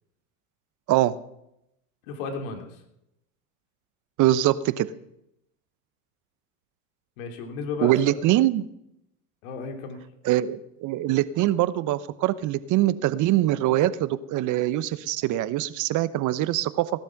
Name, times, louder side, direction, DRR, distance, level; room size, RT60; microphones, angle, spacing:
voice 1, 2.1-2.8 7.2-8.2 9.4-10.0, left 5 dB, 65° left, 4 dB, 3.3 m, -33 dB
voice 2, 4.2-4.9 7.8-8.7 10.2-16.9, right 14 dB, 45° right, 15 dB, 1.0 m, -23 dB
17.0 x 11.5 x 5.9 m, 0.82 s
hypercardioid pair, 95°, 42 cm